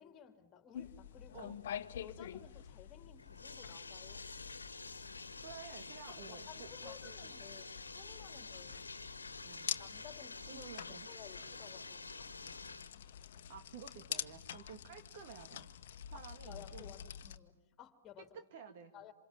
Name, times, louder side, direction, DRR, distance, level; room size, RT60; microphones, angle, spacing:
voice 1, 0.0-1.6 2.0-4.3 6.1-7.6 7.9-8.8 9.8-10.7 11.1-12.3 16.1-18.4 18.9-19.1, left 9 dB, 20° left, 7 dB, 2.9 m, -56 dB
sound 1, 0.7-17.4, left 9 dB, 55° left, 1.2 m, -48 dB
Bathtub (filling or washing), 3.2-13.0, left 3 dB, 85° left, 1.6 m, -49 dB
voice 2, 5.4-7.3 9.4-9.7 10.5-11.1 13.5-15.7 16.1-16.9 18.3-18.9, right 7 dB, 45° right, 7 dB, 1.9 m, -52 dB
27.5 x 27.0 x 7.4 m, 0.79 s
figure-of-eight pair, 115°, 0 cm